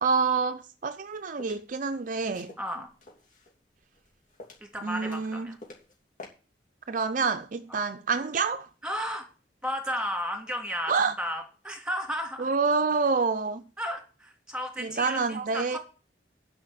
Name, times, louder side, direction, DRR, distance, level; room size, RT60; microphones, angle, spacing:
voice 1, 0.0-2.5 4.8-5.5 6.9-8.7 10.9-11.1 12.4-13.6 14.8-15.8, right 4 dB, 45° right, 0.6 m, -27 dB
sound 1, 0.9-1.6 2.3-3.6 3.9-4.8 5.0-5.9 6.2-6.3, left 2 dB, 45° left, 3.1 m, -47 dB
voice 2, 2.6-2.9 4.6-5.6 7.7-7.8 8.8-9.3 9.6-10.9 11.2-12.5 13.8-15.8, equal, 5° right, 3.0 m, -33 dB
10.0 x 5.7 x 8.2 m
head